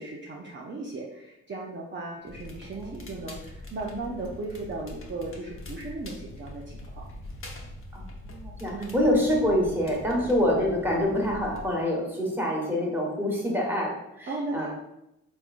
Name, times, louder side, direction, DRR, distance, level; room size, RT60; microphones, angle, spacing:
voice 1, 0.0-7.1 8.7-9.0 14.3-14.7, right 2 dB, 35° right, -4 dB, 0.6 m, -36 dB
Crackle, 2.3-11.7, left 1 dB, 40° left, 0.9 m, -43 dB
voice 2, 2.7-3.1 7.9-14.7, left 1 dB, 5° right, -3 dB, 1.4 m, -26 dB
3.5 x 3.1 x 2.5 m, 0.85 s
supercardioid pair, 50°, 33 cm